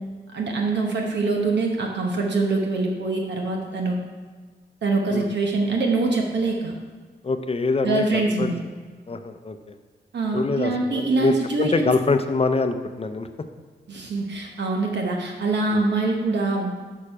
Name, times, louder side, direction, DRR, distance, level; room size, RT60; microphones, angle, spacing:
voice 1, 0.3-3.9 4.8-6.7 7.8-8.6 10.1-11.9 13.9-16.7, right 3 dB, 75° right, 1 dB, 1.0 m, -24 dB
voice 2, 7.2-8.5 9.1-9.8 10.3-13.3 15.7-15.8, left 3 dB, 35° left, 8 dB, 0.5 m, -24 dB
6.6 x 6.1 x 4.8 m, 1.4 s
wide cardioid pair, 80°, 18 cm